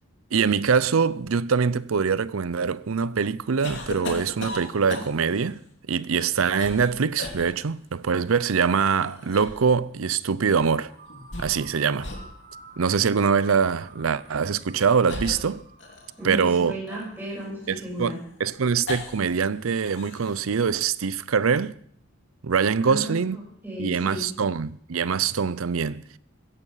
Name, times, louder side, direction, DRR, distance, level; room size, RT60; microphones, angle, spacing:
voice 1, 0.3-5.6 5.9-10.9 11.4-12.1 12.8-15.6 16.2-16.8 17.7-21.8 22.4-23.4 23.8-26.0, right 6 dB, 80° right, 0.6 m, -24 dB
sound 1, 3.6-5.4 6.2-6.9 7.2-7.5 8.7-9.7 11.1-11.7 12.0-12.3 12.9-13.0 14.1-14.3 15.1-16.3 16.9-19.4 19.6-20.4, left 2 dB, 55° left, 2.8 m, -37 dB
sound 2, 10.6-17.4, right 3 dB, 45° right, 3.8 m, -50 dB
voice 2, 16.2-18.2 22.8-24.3, right 1 dB, 10° right, 6.1 m, -34 dB
15.5 x 11.0 x 5.6 m
head